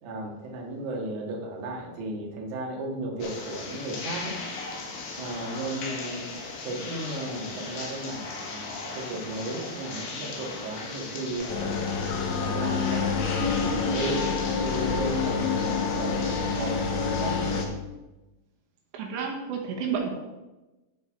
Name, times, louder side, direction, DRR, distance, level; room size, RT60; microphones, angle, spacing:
voice 1, 0.0-4.4 5.2-6.3 6.6-12.0 12.4-17.7, right 2 dB, 55° right, -1 dB, 2.4 m, -35 dB
sound 1, 3.2-17.7, left 3 dB, 65° left, 3.2 m, -37 dB
sound 2, 11.5-17.7, left 5 dB, 80° left, 3.3 m, -27 dB
voice 2, 18.9-20.2, right 6 dB, 75° right, 0 dB, 3.4 m, -30 dB
13.5 x 4.7 x 4.6 m, 1.1 s
omnidirectional pair, 5.4 m